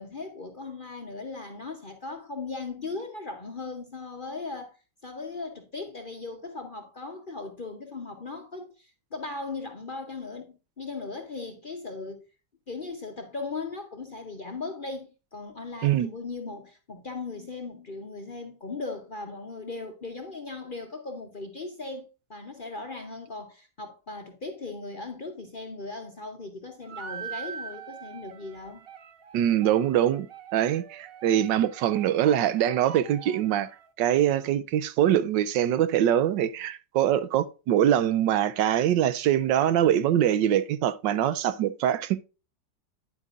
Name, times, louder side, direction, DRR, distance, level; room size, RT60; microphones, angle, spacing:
voice 1, 0.0-4.8 5.0-12.2 12.7-28.8, left 3 dB, 40° left, 0.7 m, -38 dB
sound 1, 26.8-33.9, right 7 dB, 65° right, 0.5 m, -43 dB
voice 2, 29.3-30.3 30.5-33.7 34.0-42.2, right 11 dB, 85° right, 1.3 m, -23 dB
10.0 x 8.0 x 2.5 m
omnidirectional pair, 1.9 m